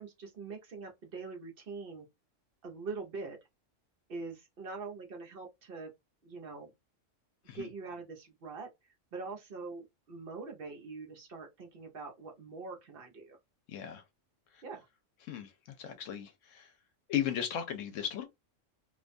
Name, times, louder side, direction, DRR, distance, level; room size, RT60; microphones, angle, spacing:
voice 1, 0.0-2.1 2.6-3.4 4.1-5.9 6.2-6.7 7.5-8.7 9.1-13.4 14.6-14.9, right 4 dB, 55° right, 0.9 m, -43 dB
voice 2, 13.7-14.0 14.5-14.6 15.2-15.5 15.8-16.7 17.1-18.2, left 9 dB, 80° left, 0.9 m, -36 dB
2.5 x 2.2 x 2.5 m
omnidirectional pair, 1.3 m